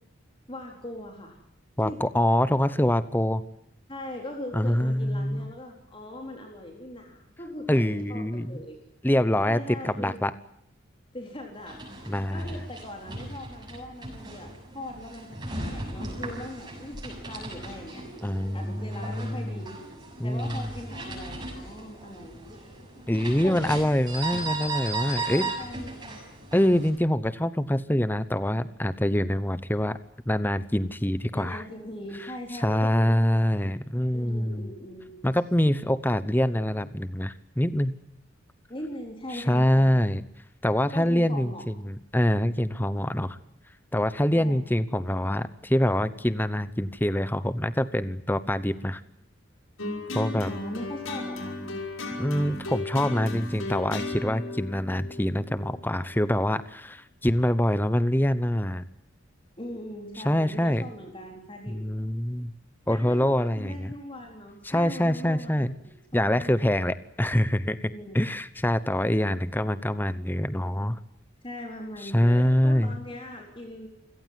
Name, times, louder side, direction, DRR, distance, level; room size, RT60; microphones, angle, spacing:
voice 1, 0.5-1.4 1.8-2.0 3.9-8.8 9.4-10.2 11.1-11.8 12.3-19.9 20.2-22.9 23.4-23.8 25.3-26.2 31.3-33.8 34.1-35.1 38.7-40.0 40.9-41.7 42.9-43.0 44.3-44.6 50.4-51.6 59.6-61.8 62.9-66.6 67.9-68.2 71.4-73.9, left 1 dB, 25° left, 2 dB, 3.9 m, -40 dB
voice 2, 1.8-3.4 4.5-5.5 7.7-8.6 9.0-10.3 12.1-12.5 18.2-19.6 20.2-20.7 23.1-25.5 26.5-30.0 30.3-31.6 32.5-34.7 35.2-38.0 39.3-40.2 40.6-43.4 43.9-49.0 50.1-50.5 52.2-58.8 60.2-60.8 61.7-62.5 62.9-63.9 64.6-65.7 66.1-71.0 72.0-73.0, left 1 dB, 10° left, 14 dB, 0.9 m, -25 dB
sound 1, 11.6-26.9, right 2 dB, 20° right, 7.0 m, -37 dB
sound 2, 49.8-56.2, left 2 dB, 85° left, 5.8 m, -35 dB
27.5 x 17.0 x 9.5 m, 0.74 s
head